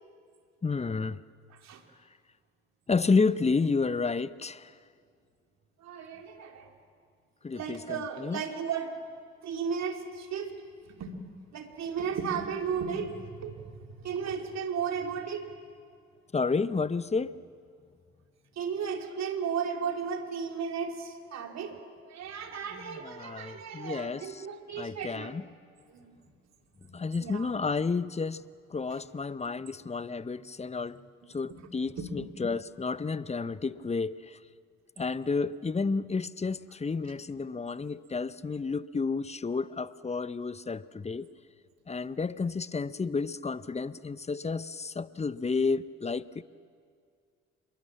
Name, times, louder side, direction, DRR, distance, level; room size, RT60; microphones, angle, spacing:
voice 1, 0.6-1.2 2.9-4.7 7.4-8.4 16.3-17.4 22.7-24.5 24.8-25.4 26.9-28.4 28.7-31.0 31.3-34.4 35.0-41.3 41.9-46.4, left 4 dB, 20° left, 0.9 m, -31 dB
voice 2, 5.8-6.7 7.5-8.9 9.4-10.5 10.8-11.1 11.5-13.6 14.0-15.5 18.6-21.8 22.0-25.3 25.9-26.1 26.9-27.5 32.0-32.1, right 6 dB, 55° right, 3.1 m, -35 dB
27.0 x 22.5 x 7.5 m
hypercardioid pair, 50°, 32 cm